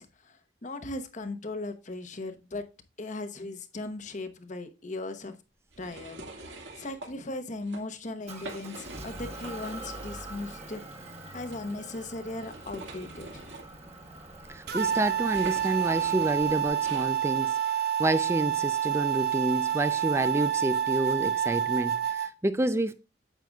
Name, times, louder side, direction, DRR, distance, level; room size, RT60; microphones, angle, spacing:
voice 1, 0.0-2.7 3.0-5.4 5.8-13.5, left 2 dB, 40° left, 1.0 m, -38 dB
sound 1, 5.7-7.1 7.5-7.8 8.2-10.1 10.4-10.5 11.5-17.1, right 2 dB, 85° right, 2.0 m, -45 dB
Motor vehicle (road) / Engine, 8.3-16.7, right 1 dB, 35° right, 1.5 m, -45 dB
voice 2, 14.5-17.6 18.0-22.9, right 1 dB, 15° right, 0.4 m, -29 dB
sound 2, 14.7-22.3, right 10 dB, 55° right, 0.7 m, -28 dB
9.1 x 7.7 x 2.3 m
head